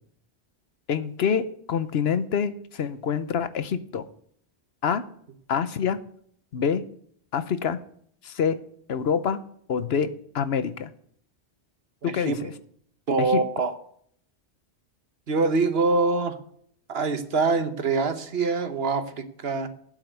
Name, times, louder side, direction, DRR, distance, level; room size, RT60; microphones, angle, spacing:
voice 1, 0.9-4.0 4.8-5.0 5.5-6.0 6.5-6.8 7.3-7.8 8.2-8.6 8.9-9.4 9.7-10.9 12.0-12.5 13.2-13.4, left 7 dB, 70° left, 13 dB, 1.0 m, -26 dB
voice 2, 12.0-12.4 13.1-13.7 15.3-16.4 16.9-19.7, right 3 dB, 65° right, 9 dB, 1.3 m, -24 dB
9.0 x 7.6 x 8.0 m, 0.63 s
omnidirectional pair, 1.1 m